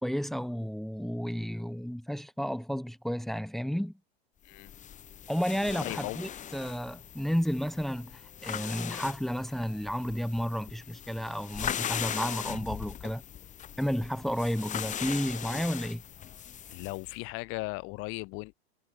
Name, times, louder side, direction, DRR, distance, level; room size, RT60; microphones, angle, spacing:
voice 1, 0.0-3.9 5.3-13.2 13.8-16.0, equal, ahead, 3.0 m, -32 dB
sound 1, 4.5-17.1, left 10 dB, 25° left, 2.2 m, -39 dB
voice 2, 5.8-6.3 16.7-18.5, left 26 dB, 45° left, 6.2 m, -37 dB
figure-of-eight pair, 100°, 31 cm